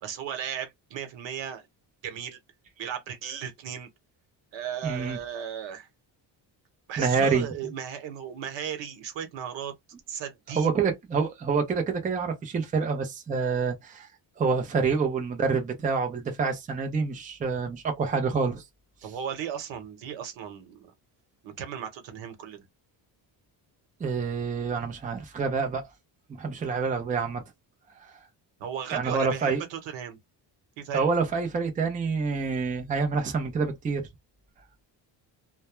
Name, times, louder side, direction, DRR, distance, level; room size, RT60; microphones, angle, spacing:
voice 1, 0.0-1.7 2.0-2.4 2.8-3.9 4.5-5.9 6.9-9.7 10.1-10.7 19.0-20.9 21.4-22.6 28.6-30.2 30.8-31.0, right 9 dB, 85° right, 1.0 m, -36 dB
voice 2, 4.8-5.2 7.0-7.5 10.6-14.1 14.4-18.6 24.0-25.8 26.4-27.4 28.9-29.6 30.9-34.0, right 5 dB, 20° right, 0.5 m, -27 dB
2.2 x 2.2 x 3.0 m
cardioid pair, 160°, 44 cm